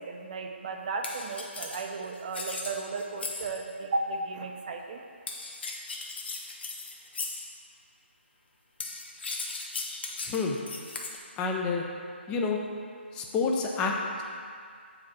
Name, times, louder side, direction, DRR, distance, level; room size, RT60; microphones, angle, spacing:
voice 1, 0.0-5.0, right 3 dB, 40° right, 4 dB, 0.7 m, -34 dB
sound 1, 1.0-3.7 5.3-7.6 8.8-11.2, left 3 dB, 55° left, 1.1 m, -37 dB
voice 2, 10.3-10.6 11.4-11.8 12.3-12.6 13.1-14.2, left 4 dB, 15° left, 0 dB, 0.6 m, -28 dB
7.0 x 5.0 x 6.2 m, 2.2 s
figure-of-eight pair, 145°, 7 cm